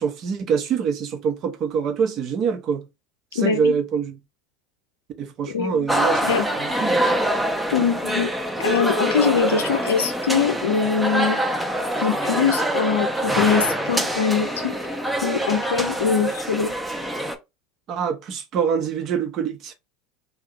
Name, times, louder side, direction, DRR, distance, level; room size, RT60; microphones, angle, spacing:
voice 1, 0.0-2.9 3.3-4.2 5.2-6.2 6.5-7.0 17.9-19.7, right 6 dB, 45° right, 0.8 m, -25 dB
voice 2, 3.4-3.8 5.5-5.9 6.2-6.5 7.7-8.3 8.6-11.4 12.0-14.8 15.2-16.7, left 6 dB, 75° left, 0.5 m, -22 dB
sound 1, 5.9-17.4, right 1 dB, 5° right, 0.6 m, -24 dB
2.7 x 2.3 x 3.6 m
hypercardioid pair, 75°, 0 cm